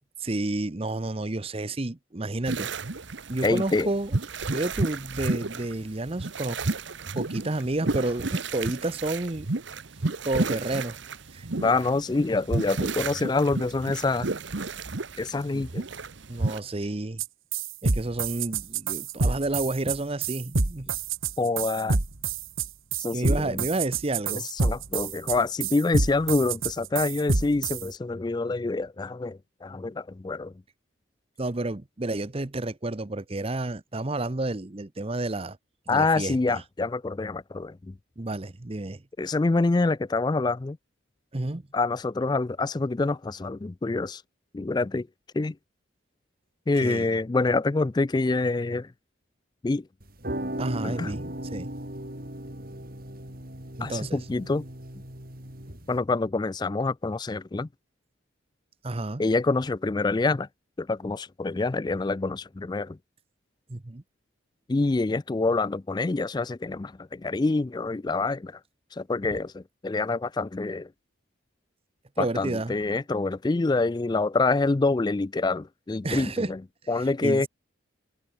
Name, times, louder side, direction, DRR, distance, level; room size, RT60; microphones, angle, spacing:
voice 1, 0.2-2.7 3.3-4.1 4.5-6.6 7.1-9.5 10.2-11.0 11.3-11.5 15.5-15.7 16.3-17.2 17.8-20.9 23.1-24.5 31.4-35.6 35.9-36.6 38.2-39.0 41.3-41.6 46.8-47.1 50.6-51.2 51.5-51.7 53.8-54.2 58.8-59.2 63.7-64.0 72.2-72.8 76.0-76.5 77.0-77.5, right 2 dB, 30° right, 0.8 m, -30 dB
sound 1, 2.5-16.6, right 3 dB, 60° right, 1.1 m, -32 dB
voice 2, 3.4-3.9 11.6-14.3 15.2-15.8 21.4-22.0 23.0-23.6 24.3-30.5 35.9-37.9 39.2-40.8 41.7-44.2 44.5-45.1 45.3-45.5 46.7-48.9 49.6-49.8 50.8-51.1 53.8-54.6 55.9-57.7 59.2-60.5 60.8-63.0 64.7-68.6 68.9-70.9 72.2-76.6 76.9-77.5, left 3 dB, 20° left, 0.3 m, -26 dB
sound 2, 17.2-17.3 17.5-27.8, right 4 dB, 80° right, 1.7 m, -27 dB
sound 3, 50.0-56.0, right 1 dB, 45° right, 5.0 m, -37 dB
head